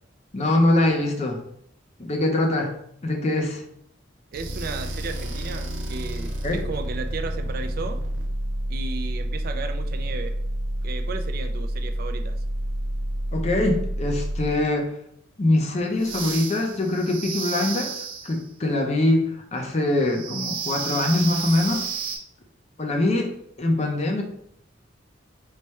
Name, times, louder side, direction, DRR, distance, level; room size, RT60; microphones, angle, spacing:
voice 1, 0.3-1.4 2.0-2.8 3.0-3.6 6.4-6.6 13.3-14.9 15.4-21.9 22.8-23.3 23.6-24.2, left 2 dB, 35° left, 2 dB, 0.6 m, -23 dB
voice 2, 4.3-8.0 8.7-10.4 10.8-12.4, right 4 dB, 50° right, 7 dB, 0.4 m, -34 dB
sound 1, 4.3-14.8 16.0-18.4 20.0-22.2, right 1 dB, 85° right, 0.7 m, -30 dB
3.2 x 2.2 x 4.2 m, 0.69 s
head